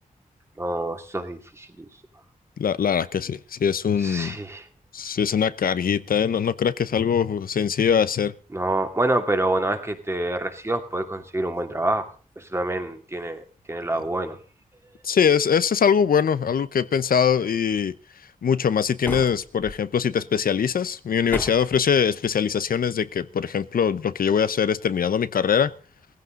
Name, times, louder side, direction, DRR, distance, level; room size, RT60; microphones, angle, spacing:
voice 1, 0.6-1.9 4.0-4.7 8.5-12.1 12.4-14.4, right 2 dB, 20° right, 6 dB, 2.4 m, -27 dB
voice 2, 2.6-4.4 4.9-8.3 15.0-17.9 18.4-25.7, left 7 dB, 90° left, 14 dB, 0.9 m, -22 dB
sound 1, 19.0-19.8 21.3-21.8, left 1 dB, 10° left, 2.1 m, -33 dB
19.0 x 15.5 x 3.9 m, 0.39 s
wide cardioid pair, 150°, 15 cm